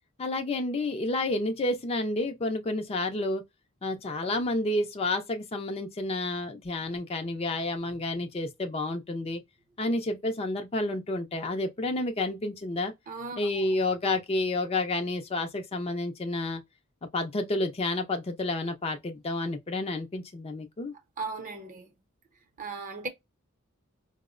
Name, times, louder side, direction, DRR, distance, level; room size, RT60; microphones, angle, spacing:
voice 1, 0.2-3.4 3.8-9.4 9.8-12.9 13.4-16.6 17.1-20.9, left 2 dB, 30° left, 0.4 m, -30 dB
voice 2, 13.1-13.4 21.2-21.9 22.6-23.1, right 4 dB, 40° right, 0.7 m, -36 dB
4.3 x 2.0 x 2.4 m
head